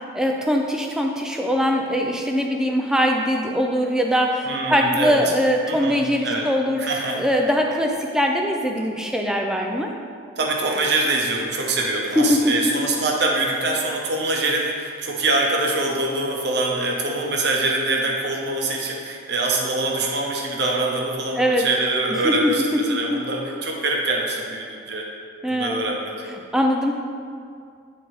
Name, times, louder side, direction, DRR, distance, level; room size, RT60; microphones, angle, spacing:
voice 1, 0.1-6.8 7.1-9.9 12.2-12.9 21.4-21.7 22.2-22.5 22.9-23.2 25.4-25.8 26.5-26.9, equal, 5° right, 1 dB, 0.4 m, -21 dB
voice 2, 4.5-5.2 5.7-6.5 6.8-7.2 10.4-25.1 25.5-26.1, right 2 dB, 55° right, -1 dB, 0.8 m, -24 dB
9.1 x 3.7 x 3.1 m, 2.3 s
head